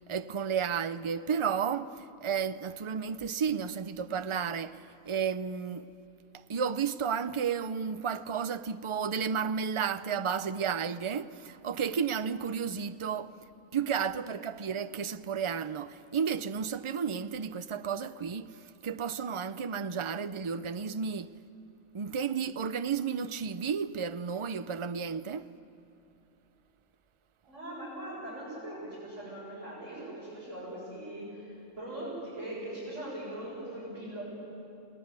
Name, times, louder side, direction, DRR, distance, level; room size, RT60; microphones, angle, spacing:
voice 1, 0.1-5.9 6.5-13.3 13.7-21.3 21.9-25.5, right 6 dB, 35° right, 0.5 m, -32 dB
voice 2, 27.5-34.3, right 1 dB, 80° right, 8.3 m, -41 dB
29.5 x 19.0 x 9.7 m
omnidirectional pair, 1.3 m